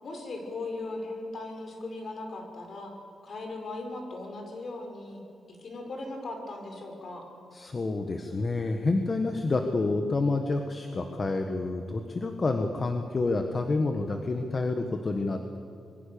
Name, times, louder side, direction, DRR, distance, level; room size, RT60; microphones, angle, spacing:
voice 1, 0.0-2.9 3.2-5.2 5.6-7.3, left 2 dB, 50° left, 3 dB, 5.4 m, -38 dB
voice 2, 7.5-15.6, left 3 dB, 35° left, 5 dB, 1.6 m, -28 dB
26.0 x 23.0 x 7.0 m, 2.6 s
cardioid pair, 110°, 0 cm